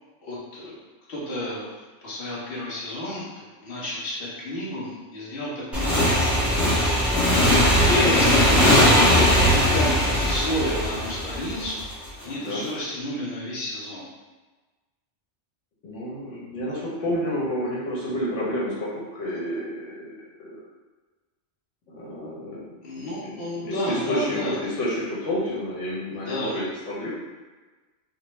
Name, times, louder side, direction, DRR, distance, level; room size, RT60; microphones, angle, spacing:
voice 1, 0.2-0.8 1.1-1.7 2.0-3.2 3.6-6.6 7.8-11.8 12.2-14.0 22.8-24.6 26.2-26.6, left 1 dB, 55° left, -7 dB, 1.0 m, -30 dB
Motorcycle / Engine, 5.7-12.1, equal, ahead, 0.4 m, -19 dB
voice 2, 12.2-12.6 15.8-20.6 21.9-22.7 23.0-27.2, left 1 dB, 85° left, -6 dB, 1.1 m, -30 dB
2.5 x 2.1 x 3.0 m, 1.3 s
omnidirectional pair, 1.2 m